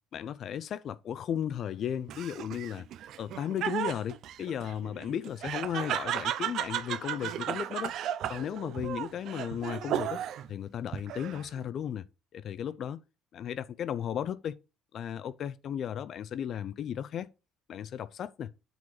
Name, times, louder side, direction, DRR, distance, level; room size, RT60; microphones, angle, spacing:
voice 1, 0.1-2.9 3.2-7.9 8.3-10.2 10.5-12.0 12.3-13.0 13.3-14.5 14.9-17.3 17.7-18.5, left 9 dB, 45° left, 0.4 m, -35 dB
Laughter, 2.1-10.5 10.9-11.6, right 11 dB, 55° right, 0.5 m, -35 dB
7.5 x 4.0 x 6.0 m
cardioid pair, 155°, 0 cm